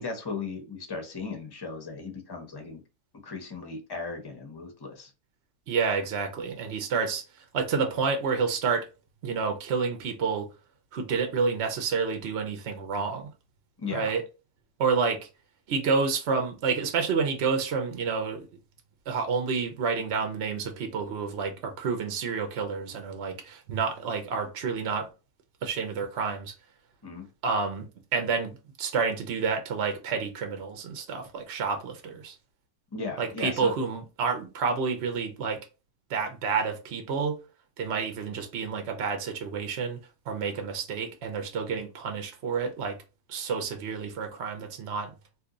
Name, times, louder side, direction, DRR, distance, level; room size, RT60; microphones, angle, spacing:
voice 1, 0.0-2.8 3.2-5.1 13.8-14.1 27.0-27.3 32.9-33.7, left 4 dB, 20° left, 0.6 m, -36 dB
voice 2, 5.7-7.2 7.5-8.9 9.2-10.5 10.9-13.3 13.9-14.2 14.8-15.3 15.7-18.5 19.1-25.1 25.6-26.5 27.4-32.4 33.2-35.6 36.1-37.4 37.8-43.0 43.3-45.1, right 5 dB, 55° right, 0.8 m, -29 dB
2.7 x 2.6 x 3.8 m
omnidirectional pair, 1.8 m